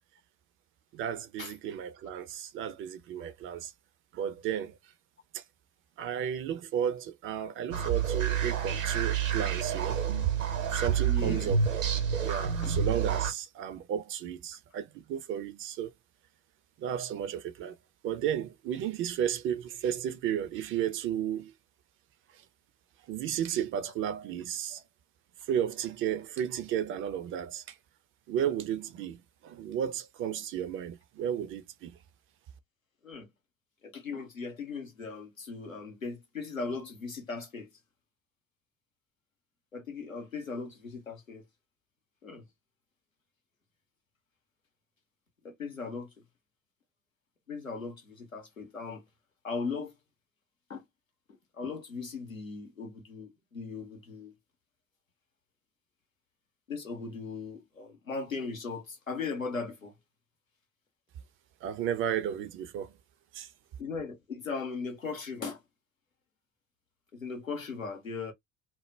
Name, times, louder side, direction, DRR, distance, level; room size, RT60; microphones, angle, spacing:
voice 1, 0.9-3.7 4.1-4.8 5.3-5.4 6.0-10.1 10.7-11.6 12.2-15.9 16.8-17.8 18.0-21.5 22.3-22.4 23.1-24.8 25.5-27.8 28.3-32.0 61.6-62.9 63.3-63.5, right 9 dB, 35° right, 0.4 m, -33 dB
sound 1, 7.7-13.3, right 7 dB, 75° right, 0.8 m, -28 dB
voice 2, 11.0-11.5 12.6-12.7 33.0-33.3 33.8-37.7 39.7-41.4 42.2-42.5 45.4-46.1 47.5-49.0 49.4-49.9 50.7-50.8 51.6-54.3 56.7-59.9 63.8-65.6 67.1-68.3, left 4 dB, 90° left, 0.7 m, -38 dB
2.1 x 2.0 x 3.1 m
figure-of-eight pair, 60°, 39 cm